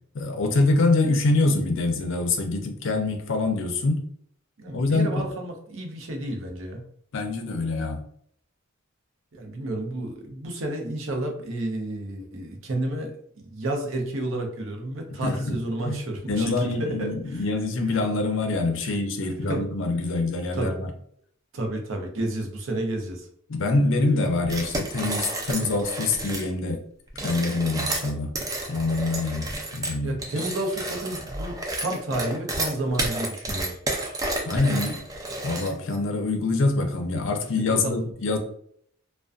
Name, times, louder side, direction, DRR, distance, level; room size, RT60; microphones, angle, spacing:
voice 1, 0.1-4.0 4.7-5.2 7.1-8.0 15.2-15.6 15.8-20.9 23.5-26.8 27.2-28.3 28.7-29.5 29.7-30.2 34.4-35.0 35.4-38.4, left 3 dB, 65° left, 5 dB, 0.5 m, -25 dB
voice 2, 4.6-6.8 9.3-17.4 18.8-18.9 19.3-19.6 20.5-20.8 21.5-23.3 30.0-33.7 37.6-38.0, right 1 dB, 65° right, 3 dB, 0.6 m, -31 dB
sound 1, 24.4-26.5 27.1-36.0, right 2 dB, 15° right, 0.3 m, -31 dB
2.4 x 2.2 x 2.4 m, 0.65 s
head